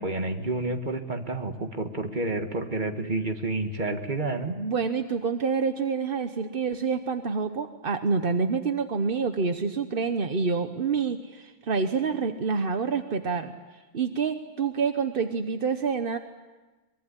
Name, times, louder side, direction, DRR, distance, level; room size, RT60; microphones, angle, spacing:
voice 1, 0.0-4.5, right 2 dB, 25° right, 6 dB, 1.8 m, -29 dB
voice 2, 4.5-13.5 13.9-16.2, right 5 dB, 40° right, 8 dB, 0.8 m, -27 dB
23.5 x 22.5 x 9.9 m, 1.2 s
omnidirectional pair, 2.2 m